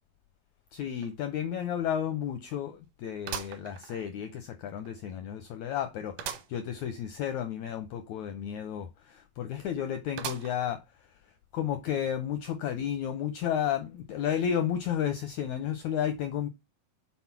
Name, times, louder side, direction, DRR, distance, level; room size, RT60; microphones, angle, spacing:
voice 1, 0.7-10.8 11.5-16.5, left 9 dB, 80° left, 1.6 m, -32 dB
sound 1, 1.0-1.1 1.6-1.7 3.3-4.4 4.9-5.0 6.2-6.6 7.0-7.1 7.3-7.4 10.2-10.8 11.4-11.5 12.5-12.6, right 9 dB, 70° right, 2.3 m, -39 dB
5.8 x 4.2 x 5.8 m
omnidirectional pair, 4.1 m